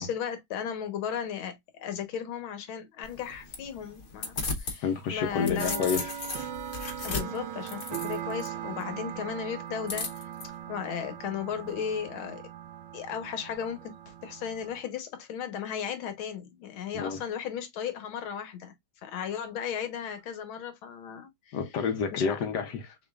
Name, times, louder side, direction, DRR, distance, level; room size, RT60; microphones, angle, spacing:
voice 1, 0.0-5.9 7.0-10.1 10.7-12.4 12.9-18.7 19.0-21.6 22.1-22.4, left 8 dB, 85° left, 1.9 m, -35 dB
sound 1, 3.0-4.8 5.2-8.5 9.9-10.4, left 4 dB, 45° left, 1.2 m, -35 dB
voice 2, 4.8-6.1 16.9-17.2 21.5-23.0, left 6 dB, 65° left, 1.2 m, -29 dB
sound 2, 5.0-14.8, right 10 dB, 70° right, 1.2 m, -40 dB
6.2 x 2.9 x 2.3 m
omnidirectional pair, 2.2 m